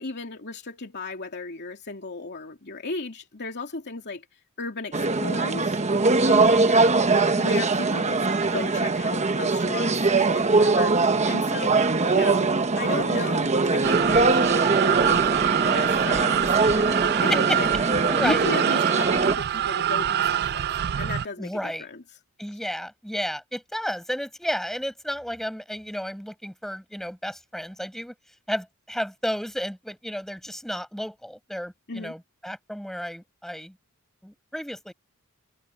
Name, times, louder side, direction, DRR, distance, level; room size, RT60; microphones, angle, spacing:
voice 1, 0.0-4.2 4.6-5.8 6.2-6.6 7.4-15.3 15.6-17.7 18.2-20.7 21.0-22.0 31.9-32.1, left 3 dB, 50° left, 2.9 m, -35 dB
sound 1, 4.9-19.4, right 3 dB, 30° right, 1.1 m, -22 dB
voice 2, 6.5-6.9 17.3-17.6 18.1-18.5 21.4-21.9 22.4-28.1 28.5-33.8 34.2-34.9, equal, ahead, 7.4 m, -32 dB
sound 2, 13.8-21.2, right 10 dB, 50° right, 0.4 m, -25 dB
head